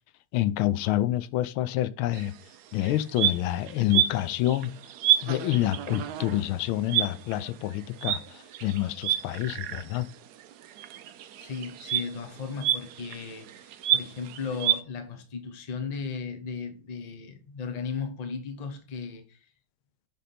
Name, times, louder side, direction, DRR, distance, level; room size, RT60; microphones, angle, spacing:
voice 1, 0.3-2.3 2.7-4.7 5.2-10.1, left 14 dB, 85° left, 1.4 m, -27 dB
sound 1, 2.1-2.3 2.8-10.1 10.4-14.8, right 11 dB, 70° right, 0.9 m, -29 dB
voice 2, 11.4-19.5, left 5 dB, 30° left, 0.8 m, -36 dB
10.0 x 3.6 x 4.2 m
omnidirectional pair, 2.2 m